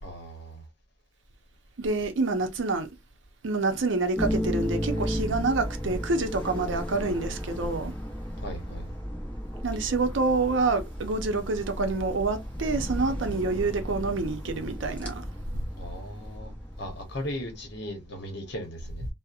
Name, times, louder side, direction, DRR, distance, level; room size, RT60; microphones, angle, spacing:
voice 1, 0.0-0.7 8.4-8.9 15.8-19.1, equal, 55° left, 0.9 m, -38 dB
voice 2, 1.8-2.9 3.4-7.9 9.6-15.2, right 3 dB, 65° right, 0.5 m, -27 dB
sound 1, 4.1-17.8, equal, 10° left, 0.7 m, -34 dB
2.8 x 2.0 x 2.3 m
head